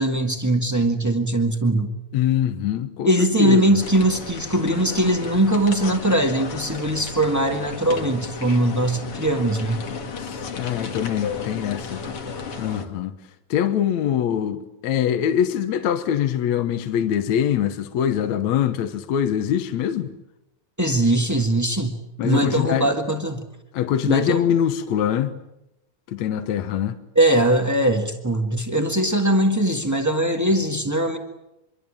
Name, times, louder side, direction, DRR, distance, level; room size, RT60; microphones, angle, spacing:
voice 1, 0.0-1.9 3.0-9.8 20.8-22.0 22.2-23.4 24.0-24.5 27.1-31.2, right 1 dB, 20° right, 0.4 m, -21 dB
voice 2, 2.1-3.9 10.2-12.0 12.6-13.1 13.5-20.1 22.2-22.9 23.7-25.4 26.1-27.0, left 9 dB, 65° left, 2.2 m, -23 dB
sound 1, 3.8-12.9, left 5 dB, 45° left, 2.8 m, -33 dB
26.0 x 23.5 x 8.8 m
omnidirectional pair, 3.9 m